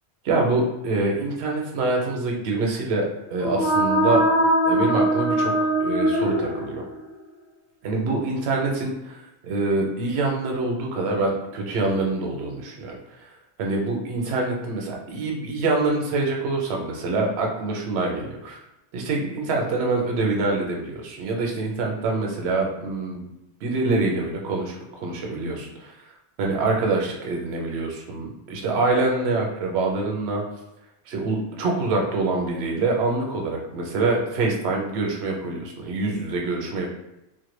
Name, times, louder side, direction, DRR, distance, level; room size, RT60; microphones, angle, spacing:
voice 1, 0.2-4.2 4.6-5.5 5.8-6.8 7.8-13.3 13.6-18.6 18.9-23.3 23.6-25.9 26.4-30.4 31.1-36.9, right 3 dB, 80° right, 0 dB, 0.8 m, -25 dB
sound 1, 3.3-7.1, right 1 dB, 55° left, 0.6 m, -22 dB
2.1 x 2.1 x 3.0 m, 0.92 s
omnidirectional pair, 1.1 m